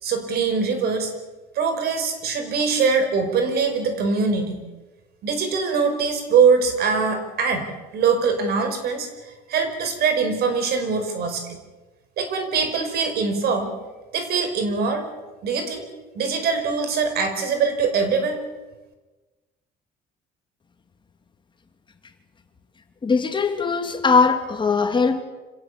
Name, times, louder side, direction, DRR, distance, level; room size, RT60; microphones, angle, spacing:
voice 1, 0.0-1.1 1.6-4.6 5.2-11.6 12.2-13.7 14.1-15.1 15.4-15.8 16.2-18.4, right 5 dB, 70° right, 7 dB, 5.3 m, -22 dB
voice 2, 23.0-25.2, left 4 dB, 30° left, 6 dB, 2.9 m, -20 dB
26.0 x 17.5 x 8.6 m, 1.2 s
cardioid pair, 110°, 17 cm